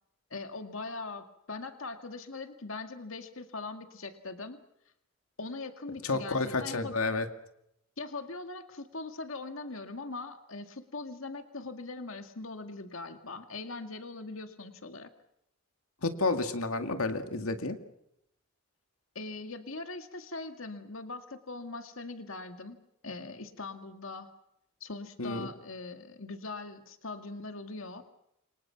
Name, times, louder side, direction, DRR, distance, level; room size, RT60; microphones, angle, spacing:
voice 1, 0.3-4.6 5.4-7.0 8.0-15.1 19.2-22.8 23.0-24.3 24.8-28.0, left 3 dB, 70° left, 7 dB, 2.1 m, -41 dB
voice 2, 6.0-7.3 16.0-17.8 25.2-25.5, left 3 dB, 90° left, 7 dB, 2.2 m, -30 dB
29.0 x 25.0 x 6.0 m, 0.79 s
head